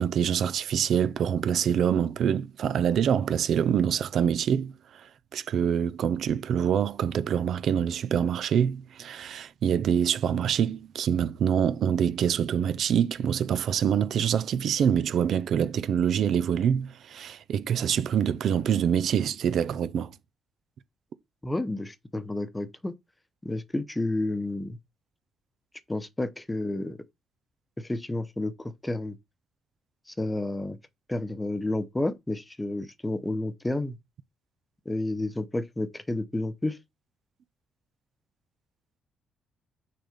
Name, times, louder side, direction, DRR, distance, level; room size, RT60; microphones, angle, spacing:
voice 1, 0.0-20.1, right 8 dB, 70° right, 0.7 m, -25 dB
voice 2, 21.4-22.9 23.4-24.8 25.9-27.0 27.8-29.2 30.1-30.8 31.1-34.0 34.8-36.8, left 2 dB, 15° left, 0.9 m, -30 dB
6.5 x 4.1 x 5.1 m
cardioid pair, 90°, 0 cm